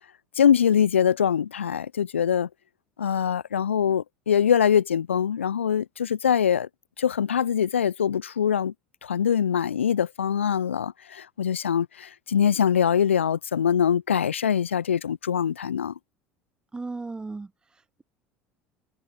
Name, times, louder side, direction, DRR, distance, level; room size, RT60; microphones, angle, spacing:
voice 1, 0.4-2.5 3.0-6.7 7.0-8.7 9.0-15.9, left 8 dB, 80° left, 0.4 m, -23 dB
voice 2, 16.7-18.0, right 3 dB, 10° right, 0.3 m, -37 dB
figure-of-eight pair, 65°, 7 cm